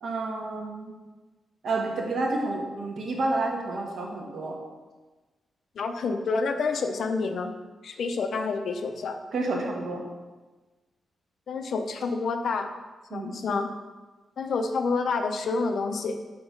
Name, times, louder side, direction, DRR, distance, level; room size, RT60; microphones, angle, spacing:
voice 1, 0.0-0.9 1.6-4.6 9.3-10.0 13.1-13.3, right 2 dB, 65° right, -1 dB, 1.2 m, -29 dB
voice 2, 5.8-7.5 7.8-9.2 11.5-12.7 13.1-13.7 14.4-16.2, left 4 dB, 60° left, 6 dB, 0.5 m, -28 dB
5.9 x 3.9 x 5.0 m, 1.2 s
wide cardioid pair, 160°, 0 cm